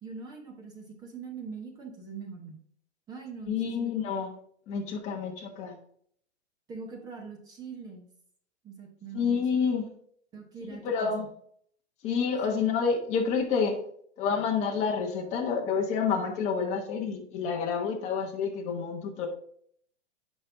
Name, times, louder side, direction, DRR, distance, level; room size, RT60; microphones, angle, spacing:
voice 1, 0.0-2.6 3.1-3.9 6.7-8.1 8.6-9.4 10.3-11.3 12.6-12.7, right 5 dB, 10° right, 1 dB, 0.8 m, -42 dB
voice 2, 3.5-4.3 4.7-5.8 9.1-9.9 10.8-11.3 12.0-13.8 14.2-19.3, left 6 dB, 20° left, 1 dB, 1.1 m, -28 dB
8.7 x 5.4 x 3.5 m, 0.63 s
hypercardioid pair, 160°, 34 cm